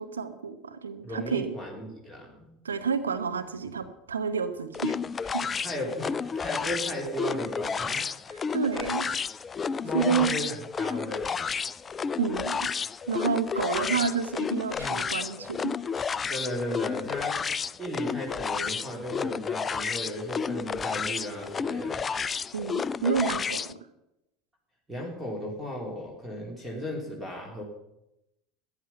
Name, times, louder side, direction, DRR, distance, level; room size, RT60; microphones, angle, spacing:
voice 1, 0.0-1.5 2.6-5.0 5.2-5.5 8.5-9.1 9.9-10.3 12.2-12.6 13.1-15.7 22.5-23.8, right 6 dB, 80° right, 9 dB, 1.0 m, -29 dB
voice 2, 1.0-2.5 5.6-8.1 9.8-11.4 13.7-14.1 14.7-15.1 16.3-17.5 17.8-22.0 24.9-27.6, equal, 10° right, -1 dB, 3.3 m, -35 dB
sound 1, 4.7-23.7, left 6 dB, 25° left, 0.4 m, -31 dB
14.0 x 9.4 x 5.7 m, 0.89 s
figure-of-eight pair, 75°, 0 cm